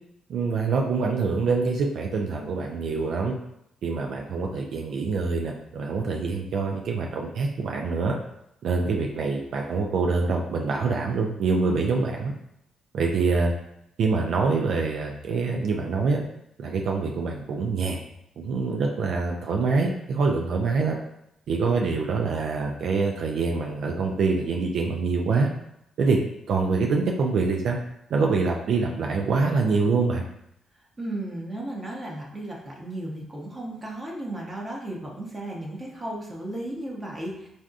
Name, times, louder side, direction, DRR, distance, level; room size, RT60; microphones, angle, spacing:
voice 1, 0.3-3.3 3.8-8.2 8.6-12.3 12.9-13.5 14.0-16.2 16.6-18.0 18.4-21.0 21.5-25.5 26.0-26.2 26.5-27.8 28.1-30.2, right 4 dB, 70° right, 1 dB, 0.3 m, -25 dB
voice 2, 31.0-37.5, right 1 dB, 25° right, -2 dB, 0.7 m, -35 dB
3.4 x 2.6 x 2.4 m, 0.78 s
cardioid pair, 90°, 0 cm